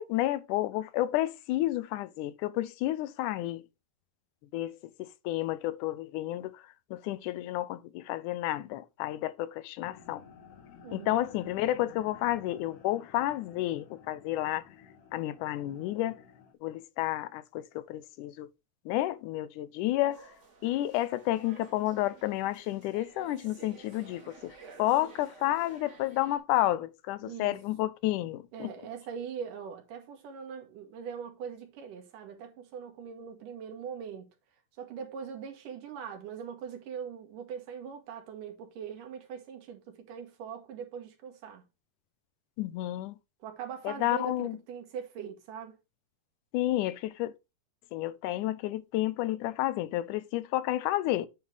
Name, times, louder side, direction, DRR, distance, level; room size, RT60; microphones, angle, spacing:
voice 1, 0.0-3.6 4.5-6.6 6.9-10.2 10.9-14.6 15.1-16.2 16.6-18.5 18.9-20.2 20.6-28.7 42.6-43.2 43.8-44.6 46.5-47.3 47.9-51.3, left 15 dB, 80° left, 2.1 m, -31 dB
sound 1, 9.8-16.5, left 6 dB, 60° left, 1.9 m, -53 dB
voice 2, 10.8-11.3 27.2-27.5 28.5-34.3 34.8-41.7 43.4-45.8, right 7 dB, 85° right, 3.1 m, -41 dB
sound 2, 20.1-26.4, right 5 dB, 45° right, 0.9 m, -53 dB
9.2 x 3.2 x 5.4 m
omnidirectional pair, 3.7 m